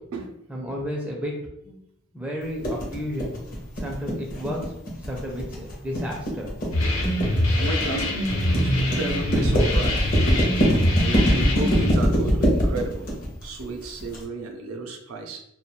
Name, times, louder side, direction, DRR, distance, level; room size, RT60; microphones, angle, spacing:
voice 1, 0.5-1.3 1.6-1.8 2.1-3.3 3.8-4.7 5.0-6.5, equal, 5° right, -2 dB, 0.4 m, -32 dB
sound 1, 2.6-14.2, equal, 40° left, 0.6 m, -23 dB
sound 2, 6.7-11.9, left 1 dB, 85° left, 0.7 m, -24 dB
voice 2, 7.5-10.2 11.0-15.4, right 2 dB, 85° right, 4 dB, 0.4 m, -34 dB
2.2 x 2.2 x 2.8 m, 0.79 s
head